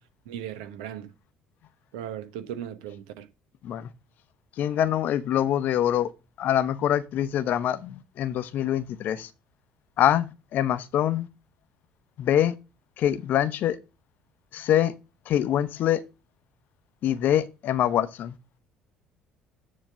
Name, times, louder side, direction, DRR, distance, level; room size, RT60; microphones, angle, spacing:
voice 1, 0.3-1.1 1.9-3.3, right 10 dB, 75° right, 1.0 m, -37 dB
voice 2, 4.6-6.1 6.4-9.3 10.0-11.3 12.2-12.5 13.0-13.8 14.5-14.9 15.3-16.0 17.0-18.4, left 11 dB, 55° left, 0.8 m, -24 dB
9.4 x 3.2 x 6.2 m
hypercardioid pair, 55°, 4 cm